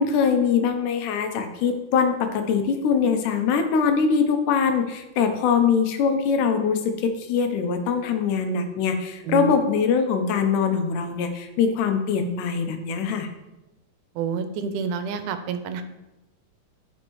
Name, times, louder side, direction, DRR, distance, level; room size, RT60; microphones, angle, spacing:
voice 1, 0.0-13.3, left 6 dB, 85° left, 6 dB, 2.2 m, -22 dB
voice 2, 14.2-15.8, right 6 dB, 85° right, 9 dB, 2.1 m, -28 dB
10.5 x 4.5 x 3.0 m, 0.98 s
omnidirectional pair, 3.6 m